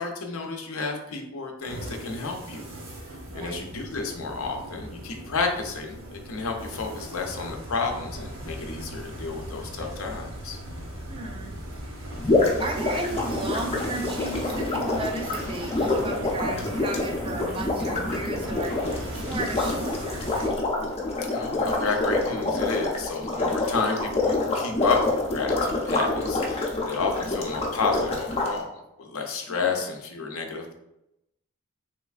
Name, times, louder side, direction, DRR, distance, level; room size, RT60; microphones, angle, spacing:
voice 1, 0.0-2.7 3.3-10.6 21.3-28.7 29.0-30.7, left 4 dB, 75° left, 3 dB, 0.6 m, -31 dB
sound 1, 1.6-20.5, right 1 dB, 75° right, 0.9 m, -38 dB
voice 2, 3.3-3.7 11.1-12.1 12.6-18.8 19.1-20.6 29.6-29.7, right 2 dB, 25° right, 3 dB, 0.3 m, -35 dB
sound 2, 12.2-28.5, left 2 dB, 30° left, 0.5 m, -27 dB
3.2 x 3.0 x 2.4 m, 0.86 s
head